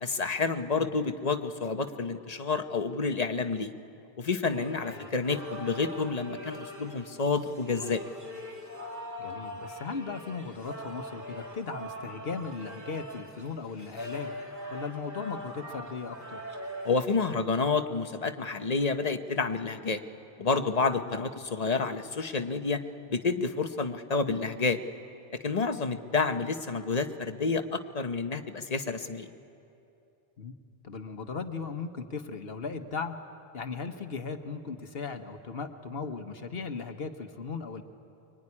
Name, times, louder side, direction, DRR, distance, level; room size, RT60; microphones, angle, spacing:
voice 1, 0.0-3.7 4.2-8.0 16.8-20.0 20.4-22.8 23.1-24.8 25.4-29.3, left 4 dB, 40° left, 7 dB, 1.0 m, -29 dB
sound 1, 4.5-17.0, equal, 15° right, 2.6 m, -42 dB
voice 2, 9.2-14.3 14.7-16.4 21.1-21.2 30.4-30.5 30.8-33.2 33.5-37.8, left 5 dB, 70° left, 7 dB, 1.4 m, -37 dB
24.0 x 23.0 x 9.8 m, 2.8 s
omnidirectional pair, 1.0 m